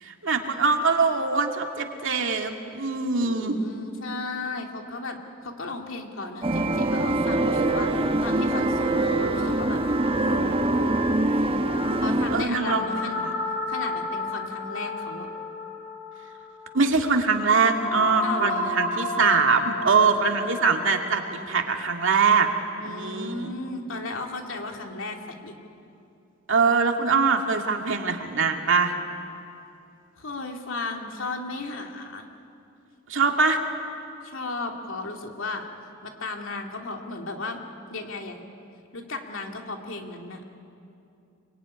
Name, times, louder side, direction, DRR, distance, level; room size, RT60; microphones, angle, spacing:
voice 1, 0.0-3.6 12.3-13.3 16.7-22.5 22.8-23.5 26.5-28.9 33.1-33.6, right 4 dB, 65° right, 3 dB, 2.4 m, -23 dB
voice 2, 3.2-11.0 12.0-13.2 13.7-15.3 18.2-18.8 22.8-25.6 30.2-32.3 34.2-35.7 36.0-37.6 37.9-38.4 38.9-40.4, left 3 dB, 70° left, 2 dB, 2.9 m, -35 dB
sound 1, 6.4-12.4, right 2 dB, 25° right, 1.3 m, -24 dB
sound 2, 12.6-22.8, left 2 dB, 45° left, 6.5 m, -33 dB
26.5 x 23.0 x 9.9 m, 2.7 s
head